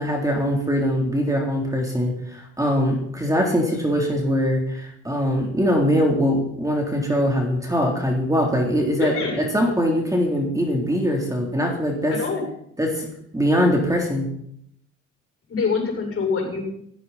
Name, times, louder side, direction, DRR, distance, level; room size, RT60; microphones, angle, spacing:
voice 1, 0.0-12.1 12.8-13.1 13.3-14.3, equal, 10° right, 0 dB, 3.6 m, -22 dB
voice 2, 9.0-9.4 12.1-12.5 15.5-16.6, left 5 dB, 50° left, 1 dB, 7.3 m, -25 dB
16.5 x 15.0 x 4.3 m, 0.72 s
cardioid pair, 90°, 30 cm